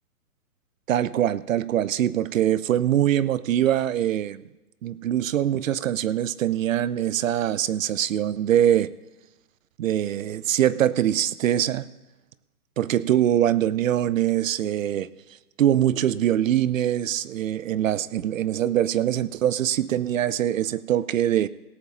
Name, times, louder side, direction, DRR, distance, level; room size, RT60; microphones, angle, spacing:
voice 1, 0.9-4.4 4.8-8.9 9.8-11.9 12.8-15.1 15.6-21.5, right 11 dB, 60° right, 18 dB, 0.6 m, -23 dB
17.5 x 14.0 x 2.9 m, 1.0 s
hypercardioid pair, 150°, 46 cm